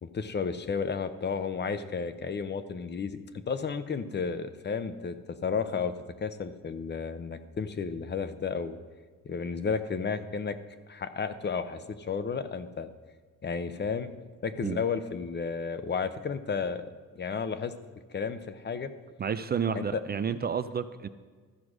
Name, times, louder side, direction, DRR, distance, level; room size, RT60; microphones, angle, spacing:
voice 1, 0.0-3.2 3.5-5.2 5.4-5.9 6.2-8.8 9.2-10.6 10.9-12.9 13.4-14.1 14.4-16.9 17.2-17.7 18.1-18.9 19.7-20.0, left 5 dB, 35° left, 11 dB, 0.7 m, -32 dB
voice 2, 19.2-21.1, right 7 dB, 35° right, 11 dB, 0.4 m, -30 dB
13.5 x 4.7 x 6.3 m, 1.5 s
cardioid pair, 90°, 30 cm